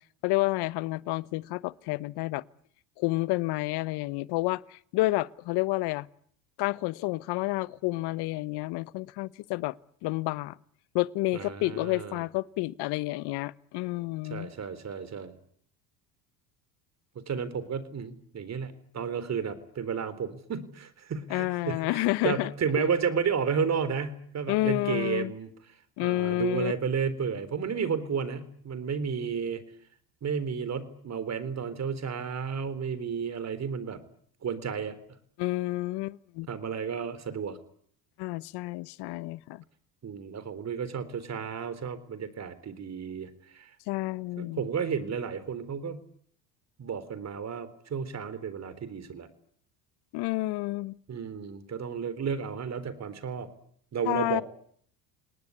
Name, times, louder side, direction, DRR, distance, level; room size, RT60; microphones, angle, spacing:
voice 1, 0.2-2.4 3.0-6.1 6.6-9.8 10.0-10.6 10.9-14.5 21.3-22.5 22.8-22.9 24.5-25.3 26.0-26.7 35.4-36.5 38.2-39.6 43.9-44.6 50.1-50.9 54.0-54.4, left 20 dB, 65° left, 1.1 m, -30 dB
voice 2, 11.3-12.2 14.2-15.3 17.3-25.5 26.0-29.6 30.2-34.0 34.4-35.0 36.5-37.6 40.0-43.7 44.4-46.0 46.8-49.3 51.1-53.5 53.9-54.4, right 6 dB, 35° right, 4.0 m, -32 dB
28.0 x 19.5 x 9.7 m
supercardioid pair, 90°, 43 cm